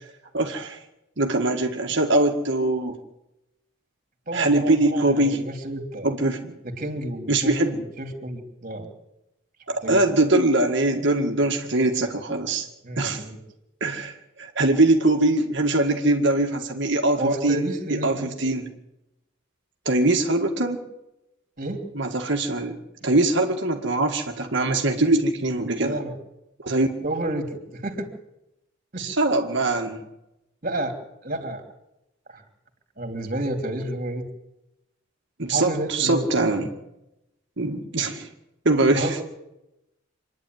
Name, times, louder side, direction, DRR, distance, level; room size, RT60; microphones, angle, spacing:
voice 1, 0.3-0.8 1.2-3.0 4.3-5.4 6.0-6.5 7.3-7.8 9.7-12.7 13.0-13.2 13.8-14.1 14.4-17.7 17.9-18.7 19.9-20.8 21.9-22.8 23.0-26.0 26.6-26.9 29.0-30.0 35.4-36.7 37.6-38.3 38.7-39.2, right 2 dB, 60° right, 3 dB, 2.0 m, -22 dB
voice 2, 4.3-6.1 6.6-8.9 9.8-10.0 12.8-13.4 17.2-18.3 21.6-21.8 25.8-26.2 27.0-28.1 28.9-29.0 30.6-30.9 31.2-31.6 32.3-32.4 33.0-34.2 35.5-36.3 38.9-39.2, right 1 dB, 40° right, 5 dB, 3.2 m, -30 dB
26.5 x 10.5 x 9.5 m, 0.90 s
head